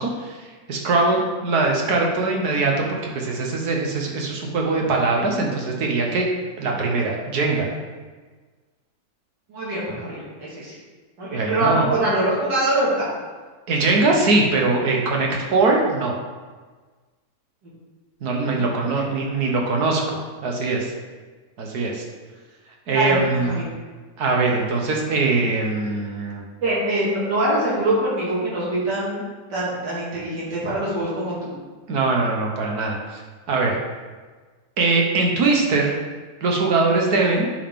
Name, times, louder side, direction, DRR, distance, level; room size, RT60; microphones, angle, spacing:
voice 1, 0.0-6.3 6.6-7.7 11.3-11.9 13.7-16.2 18.2-20.2 20.4-20.9 21.6-22.0 22.9-23.6 24.2-26.4 31.9-33.2 33.5-33.8 34.8-35.9 36.4-37.5, right 3 dB, 65° right, 0 dB, 1.6 m, -21 dB
voice 2, 9.5-10.7 11.2-13.1 18.5-19.0 22.9-23.6 26.6-29.2 29.5-31.5 37.1-37.3, right 1 dB, 90° right, -8 dB, 2.8 m, -24 dB
9.4 x 5.1 x 3.7 m, 1.4 s
omnidirectional pair, 1.8 m